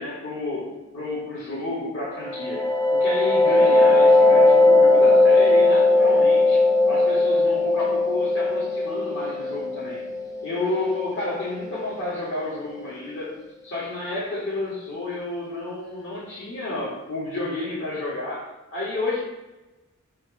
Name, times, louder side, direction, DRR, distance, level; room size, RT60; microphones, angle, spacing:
voice 1, 0.0-2.6 2.9-10.0 10.4-13.3 13.6-19.2, left 2 dB, 65° left, -9 dB, 2.3 m, -30 dB
sound 1, 2.2-11.7, left 2 dB, 15° left, 0.5 m, -18 dB
9.0 x 3.2 x 5.7 m, 1.1 s
head